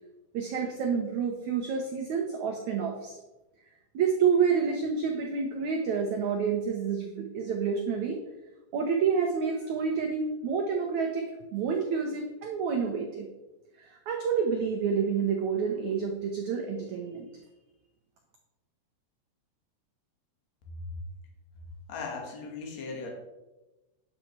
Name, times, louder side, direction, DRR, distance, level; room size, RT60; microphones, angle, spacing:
voice 1, 0.3-3.2 3.9-8.2 8.7-13.3 13.8-17.3, right 6 dB, 80° right, 2 dB, 1.7 m, -28 dB
voice 2, 21.9-23.1, left 4 dB, 50° left, 1 dB, 2.8 m, -38 dB
9.9 x 7.8 x 4.6 m, 1.1 s
omnidirectional pair, 4.7 m